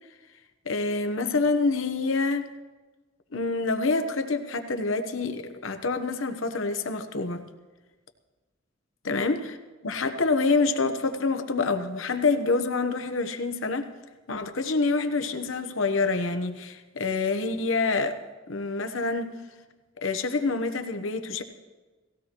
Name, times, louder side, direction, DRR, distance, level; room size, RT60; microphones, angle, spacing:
voice 1, 0.6-2.4 3.3-7.4 9.0-9.4 9.8-13.9 14.3-18.2 18.5-19.4 20.0-21.4, left 3 dB, 70° left, 8 dB, 1.0 m, -26 dB
18.5 x 16.0 x 3.0 m, 1.3 s
head